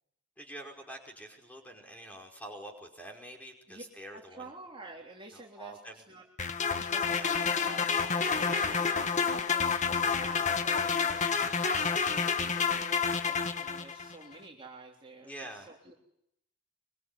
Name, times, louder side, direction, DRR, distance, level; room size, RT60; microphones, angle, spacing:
voice 1, 0.4-4.5 5.3-6.0 7.1-7.4 8.3-8.8 15.2-15.7, right 1 dB, 5° left, 2 dB, 5.1 m, -46 dB
voice 2, 4.1-6.2 6.9-15.9, right 3 dB, 25° right, 0 dB, 3.2 m, -49 dB
sound 1, 6.4-14.1, left 5 dB, 35° left, 1.5 m, -29 dB
24.5 x 24.0 x 9.8 m, 0.79 s
head